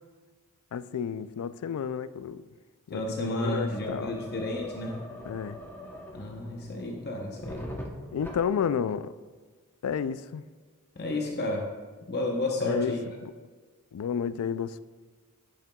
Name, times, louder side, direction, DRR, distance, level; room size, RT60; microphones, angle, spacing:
voice 1, 0.7-2.4 2.9-4.2 5.2-5.6 8.1-9.1 9.8-10.4 12.6-13.0 13.2-13.3 13.9-14.8, left 7 dB, 70° left, 0.3 m, -31 dB
voice 2, 2.9-4.9 6.1-7.7 11.0-11.6 12.1-13.0, left 1 dB, 50° left, 0.8 m, -31 dB
sound 1, 3.7-8.7, equal, 10° left, 0.8 m, -42 dB
10.5 x 8.6 x 2.3 m
head